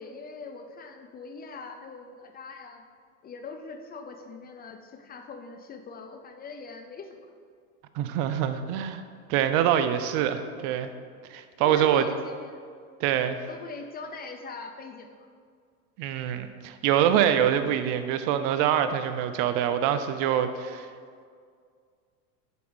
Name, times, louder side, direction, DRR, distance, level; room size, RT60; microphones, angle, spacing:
voice 1, 0.0-2.8 3.2-7.2 11.6-12.6 13.5-15.3, left 4 dB, 20° left, 5 dB, 0.5 m, -42 dB
voice 2, 7.9-9.0 9.3-10.9 11.3-12.0 13.0-13.5 16.0-20.9, right 10 dB, 55° right, 10 dB, 0.7 m, -25 dB
7.0 x 4.9 x 6.2 m, 2.1 s
supercardioid pair, 110°, 42 cm